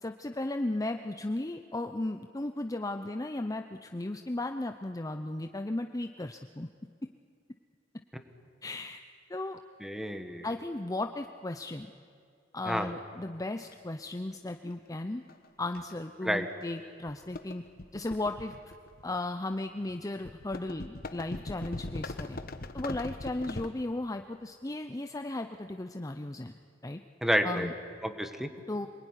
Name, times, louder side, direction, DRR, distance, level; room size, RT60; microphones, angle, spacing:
voice 1, 0.0-6.7 8.6-9.0 9.3-9.6 10.4-11.9 12.5-15.2 15.6-17.6 17.9-18.5 19.0-22.4 22.7-26.5 26.8-27.0 27.4-27.7 28.7-28.9, left 2 dB, 20° left, 6 dB, 0.7 m, -35 dB
voice 2, 9.8-10.5 12.7-12.9 16.2-16.5 27.2-27.7 28.0-28.5, equal, ahead, 7 dB, 1.7 m, -29 dB
sound 1, 13.7-13.8 15.3-15.5 15.7-16.0 16.6-16.8 17.0-19.2 20.2-23.7, left 2 dB, 55° left, 1.2 m, -40 dB
27.0 x 20.5 x 9.9 m, 2.3 s
head